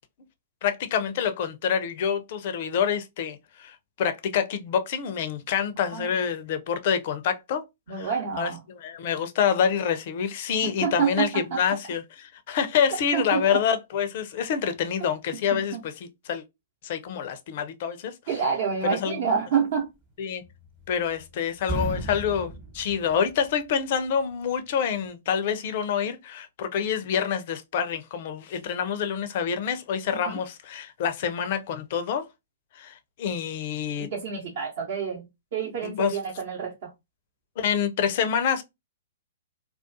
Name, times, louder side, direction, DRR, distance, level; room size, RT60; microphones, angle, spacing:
voice 1, 0.6-7.6 7.9-8.1 8.4-8.5 8.8-12.0 12.5-15.9 16.3-16.4 16.8-18.1 19.0-19.2 20.2-20.4 20.9-32.3 32.8-34.1 35.8-36.2 37.6-38.6, left 7 dB, 50° left, 0.4 m, -27 dB
voice 2, 5.9-6.2 7.9-8.6 10.6-11.8 12.9-13.6 15.5-15.6 18.3-19.9 30.2-30.4 34.0-36.9, right 6 dB, 55° right, 0.8 m, -28 dB
sound 1, 20.4-21.3 21.6-23.7, right 1 dB, 25° right, 1.0 m, -34 dB
2.3 x 2.3 x 2.5 m
figure-of-eight pair, 115°, 0 cm